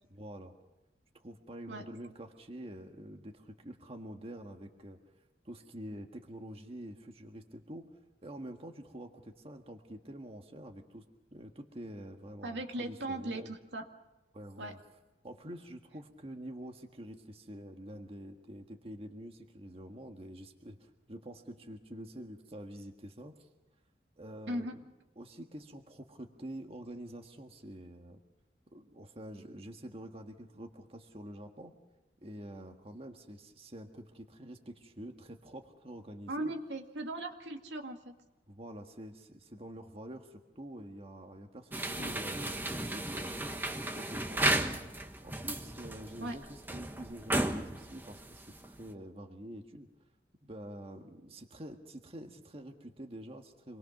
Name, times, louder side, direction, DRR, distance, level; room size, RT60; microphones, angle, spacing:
voice 1, 0.1-0.5 1.1-5.0 5.4-7.9 8.2-11.0 11.3-13.5 14.3-14.8 15.2-23.5 24.2-24.6 25.2-28.2 28.7-31.7 32.2-36.5 38.5-43.5 43.9-44.7 45.2-46.4 46.7-49.9 50.4-53.8, right 1 dB, 35° right, 3 dB, 1.6 m, -47 dB
voice 2, 12.4-13.9 14.6-14.8 24.5-24.7 36.3-38.2 42.0-42.1 46.2-46.4, right 1 dB, 75° right, 3 dB, 2.1 m, -38 dB
sound 1, 41.7-48.9, right 1 dB, 10° right, 1.2 m, -35 dB
27.0 x 21.0 x 6.0 m, 1.0 s
head